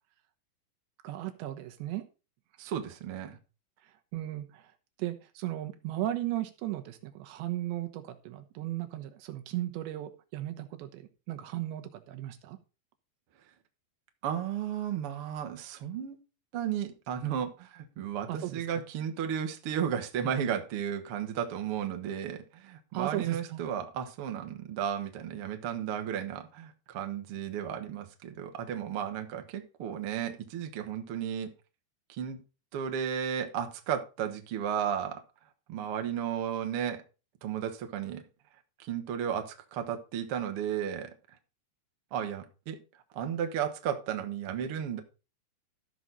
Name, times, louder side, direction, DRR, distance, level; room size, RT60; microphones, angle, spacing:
voice 1, 1.0-2.0 3.8-4.7 5.0-12.6 18.3-18.6 22.9-23.6, right 14 dB, 90° right, 3.3 m, -36 dB
voice 2, 2.6-3.4 14.2-16.2 16.5-31.5 32.1-32.4 32.7-35.2 35.7-37.0 37.4-38.2 38.8-41.4 42.1-42.8 43.1-45.0, right 9 dB, 75° right, 1.3 m, -34 dB
14.0 x 6.3 x 4.0 m
omnidirectional pair, 4.9 m